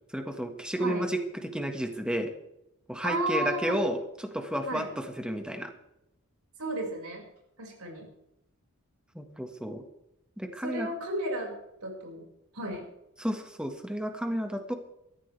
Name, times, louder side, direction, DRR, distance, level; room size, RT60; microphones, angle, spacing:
voice 1, 0.1-2.3 2.9-5.7 9.2-9.8 10.4-10.9 13.2-14.7, equal, 5° right, 5 dB, 1.7 m, -32 dB
voice 2, 3.0-3.9 4.7-4.8 6.6-7.2 7.6-8.1 10.6-11.5 11.8-12.2 12.5-12.9, right 1 dB, 85° right, 0 dB, 5.8 m, -33 dB
19.5 x 14.0 x 3.5 m, 0.85 s
head